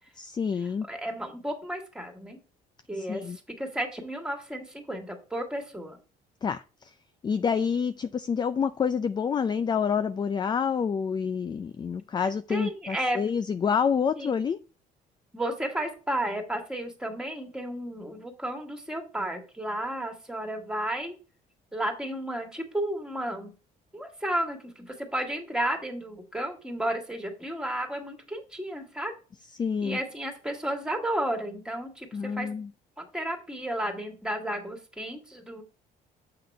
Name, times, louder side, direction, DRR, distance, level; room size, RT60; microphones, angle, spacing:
voice 1, 0.2-0.9 3.0-3.4 6.4-6.9 7.2-14.6 29.5-30.0 32.1-32.7, left 6 dB, 25° left, 0.4 m, -28 dB
voice 2, 0.9-2.4 2.9-6.0 12.5-13.2 14.2-14.3 15.3-21.1 21.7-23.5 23.9-29.1 29.8-32.5 33.0-35.6, right 1 dB, 5° right, 2.0 m, -33 dB
7.6 x 5.8 x 3.4 m
cardioid pair, 110°, 17 cm